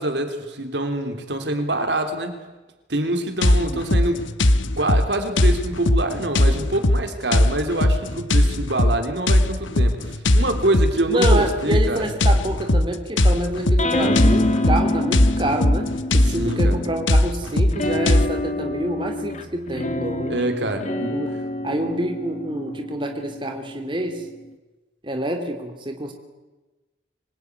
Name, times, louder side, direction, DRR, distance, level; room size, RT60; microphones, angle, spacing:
voice 1, 0.0-2.3 2.9-4.2 4.8-12.0 16.2-16.8 20.3-21.2, right 1 dB, 65° right, 7 dB, 3.3 m, -25 dB
sound 1, 3.4-18.3, left 1 dB, 90° left, 1.3 m, -19 dB
voice 2, 3.5-3.9 11.1-20.4 21.1-21.3 21.6-24.2 25.0-26.1, right 1 dB, 25° right, 4 dB, 3.0 m, -27 dB
sound 2, 13.8-17.2 17.7-24.5, left 1 dB, 40° left, 1.8 m, -27 dB
25.5 x 22.0 x 9.7 m, 1.2 s
head